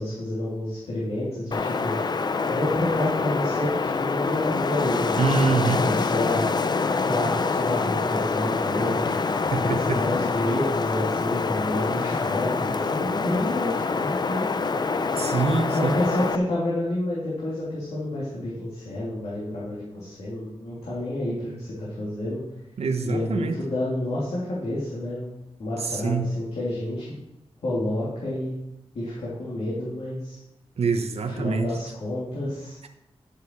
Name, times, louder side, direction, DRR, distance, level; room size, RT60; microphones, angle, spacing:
voice 1, 0.0-6.4 7.0-9.3 9.6-14.5 15.7-22.4 23.0-25.3 25.6-27.1 27.6-28.6 28.9-30.4 31.3-32.8, left 1 dB, 85° left, -8 dB, 3.1 m, -29 dB
Wind, 1.5-16.4, left 4 dB, 45° left, 0.5 m, -26 dB
voice 2, 5.2-5.8 9.5-10.0 15.2-15.9 22.8-23.5 25.8-26.3 30.8-31.7, right 4 dB, 80° right, 6 dB, 1.0 m, -25 dB
12.5 x 7.0 x 4.7 m, 0.89 s
wide cardioid pair, 155°, 10 cm